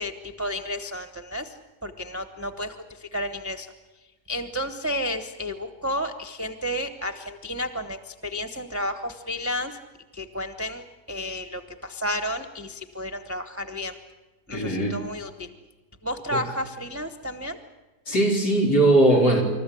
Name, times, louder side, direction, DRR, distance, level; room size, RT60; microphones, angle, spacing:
voice 1, 0.0-3.7 4.3-9.8 10.1-14.0 14.5-15.5 16.0-17.6, left 1 dB, 10° right, 4 dB, 0.9 m, -32 dB
voice 2, 14.5-15.0 16.3-16.4 18.1-19.4, right 1 dB, 85° left, 0 dB, 4.8 m, -19 dB
26.5 x 14.0 x 10.0 m, 1.2 s
omnidirectional pair, 1.7 m